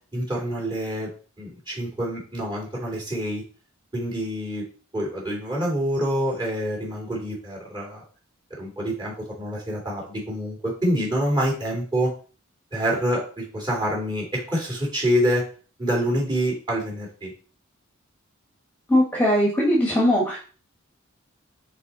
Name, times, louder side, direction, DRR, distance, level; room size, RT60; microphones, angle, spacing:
voice 1, 0.1-1.1 1.4-3.4 3.9-4.6 4.9-8.0 8.6-12.1 12.7-15.4 15.8-17.3, equal, 20° right, -3 dB, 3.0 m, -26 dB
voice 2, 18.9-20.4, equal, 10° left, -3 dB, 1.5 m, -20 dB
5.4 x 4.4 x 4.2 m, 0.38 s
head